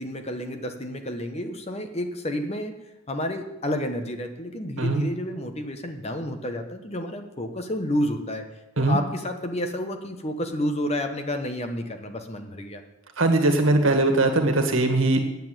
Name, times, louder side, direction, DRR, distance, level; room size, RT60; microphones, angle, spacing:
voice 1, 0.0-2.7 3.1-8.5 8.8-12.8, left 1 dB, 30° left, 6 dB, 1.0 m, -30 dB
voice 2, 13.2-15.2, right 2 dB, 65° right, 5 dB, 1.9 m, -20 dB
9.4 x 8.5 x 9.0 m, 0.97 s
head